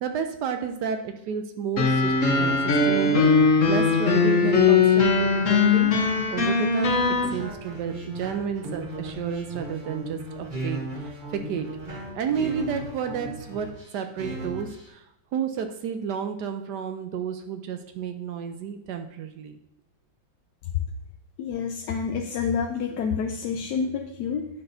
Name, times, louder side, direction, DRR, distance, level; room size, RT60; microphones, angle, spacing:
voice 1, 0.0-5.9 6.3-11.7 12.1-15.0 15.3-19.6, right 7 dB, 70° right, 7 dB, 1.1 m, -31 dB
sound 1, 1.8-7.3, left 4 dB, 50° left, 1.2 m, -20 dB
sound 2, 7.0-14.9, right 1 dB, 30° right, 1.1 m, -36 dB
voice 2, 21.4-24.5, left 6 dB, 70° left, 4 dB, 1.0 m, -28 dB
10.5 x 5.9 x 2.7 m, 0.83 s
omnidirectional pair, 2.1 m